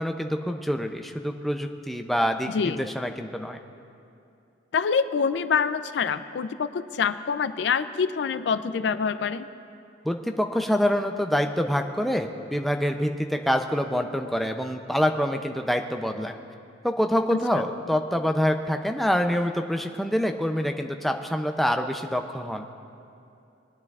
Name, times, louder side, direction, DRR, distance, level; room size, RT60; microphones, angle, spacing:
voice 1, 0.0-3.6 10.0-16.3 16.8-22.7, equal, ahead, 4 dB, 0.4 m, -26 dB
voice 2, 2.5-2.9 4.7-9.5 17.3-17.4, left 6 dB, 70° left, 13 dB, 0.4 m, -26 dB
21.0 x 9.9 x 2.4 m, 2.7 s
head